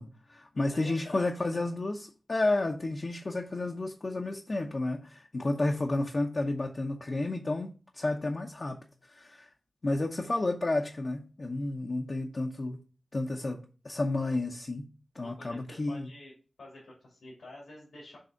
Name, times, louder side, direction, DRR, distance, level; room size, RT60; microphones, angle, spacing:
voice 1, 0.0-8.8 9.1-9.5 9.8-12.8 13.1-13.6 13.8-14.9 15.1-16.1, left 2 dB, 45° left, 0.8 m, -31 dB
voice 2, 0.5-1.6 15.2-16.3 16.6-18.2, left 2 dB, 85° left, 2.8 m, -48 dB
6.4 x 3.4 x 5.8 m
wide cardioid pair, 75°, 0 cm